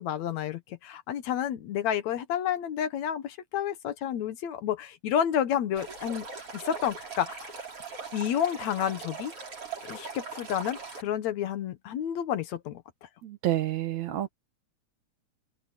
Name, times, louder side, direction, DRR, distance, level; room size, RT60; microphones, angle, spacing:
voice 1, 0.0-6.3 6.5-7.5 8.1-9.3 9.8-12.8, left 9 dB, 70° left, 2.3 m, -30 dB
Stream, 5.8-11.0, right 4 dB, 45° right, 5.8 m, -40 dB
voice 2, 13.2-14.3, right 13 dB, 70° right, 2.7 m, -29 dB
omnidirectional pair, 3.4 m